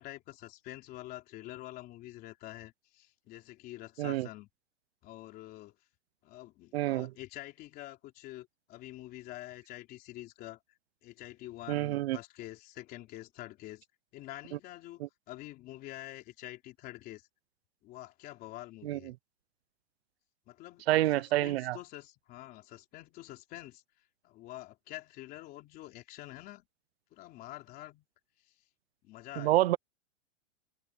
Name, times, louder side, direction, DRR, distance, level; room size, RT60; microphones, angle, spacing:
voice 1, 0.0-4.5 5.0-5.8 6.2-10.6 11.0-13.9 14.1-15.0 15.3-17.3 17.8-19.1 20.5-20.9 21.1-23.8 24.2-26.7 27.1-28.1 29.0-29.6, left 16 dB, 25° left, 3.6 m, -47 dB
voice 2, 6.7-7.1 11.7-12.2 15.0-15.1 18.8-19.0 20.9-21.8 29.4-29.8, right 16 dB, 55° right, 0.6 m, -28 dB
supercardioid pair, 175°, 38 cm